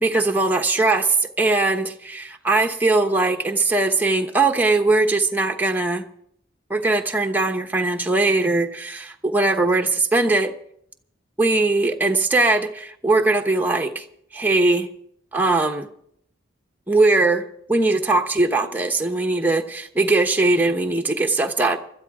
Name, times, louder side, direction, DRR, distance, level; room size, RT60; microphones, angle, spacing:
voice 1, 0.0-6.0 6.7-10.5 11.4-14.0 14.3-14.9 15.3-15.9 16.9-21.8, right 2 dB, 10° right, 3 dB, 1.1 m, -20 dB
21.0 x 13.5 x 3.7 m, 0.68 s
head